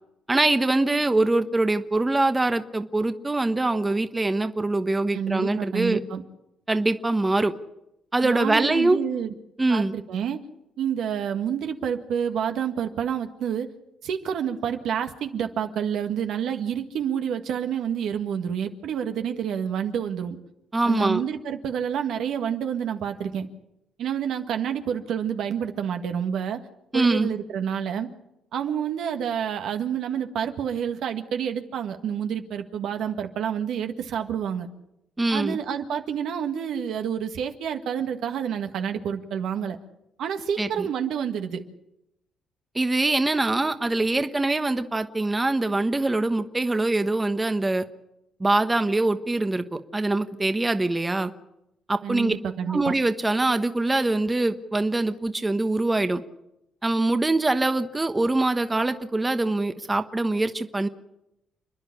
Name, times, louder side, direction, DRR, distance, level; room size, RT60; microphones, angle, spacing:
voice 1, 0.3-6.0 6.7-7.5 8.1-9.0 9.6-9.9 20.7-21.2 26.9-27.3 35.2-35.6 40.6-40.9 42.7-47.8 48.4-51.3 51.9-52.3 52.7-56.2 56.8-60.9, right 2 dB, 20° right, 9 dB, 1.2 m, -23 dB
voice 2, 5.1-6.2 8.2-9.3 9.7-10.4 10.8-13.7 14.0-20.4 20.8-23.5 24.0-26.6 26.9-28.1 28.5-34.7 35.3-39.8 40.2-41.6 52.0-52.9, right 8 dB, 75° right, 6 dB, 1.7 m, -28 dB
30.0 x 10.5 x 8.6 m, 0.87 s
cardioid pair, 90°, 0 cm